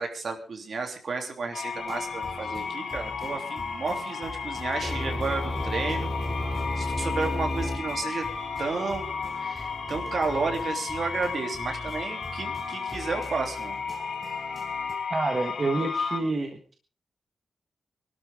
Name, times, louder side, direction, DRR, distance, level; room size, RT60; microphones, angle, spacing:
voice 1, 0.0-6.1 6.8-8.3 8.6-9.1 9.4-13.8, right 4 dB, 55° right, 4 dB, 3.2 m, -32 dB
sound 1, 1.5-16.2, left 5 dB, 75° left, 2.9 m, -34 dB
sound 2, 1.7-15.0, left 1 dB, 10° left, 4.8 m, -43 dB
sound 3, 4.8-10.7, left 1 dB, 25° left, 7.2 m, -34 dB
voice 2, 15.1-16.7, right 3 dB, 35° right, 5 dB, 1.5 m, -28 dB
24.0 x 12.5 x 3.7 m, 0.36 s
wide cardioid pair, 155°, 0 cm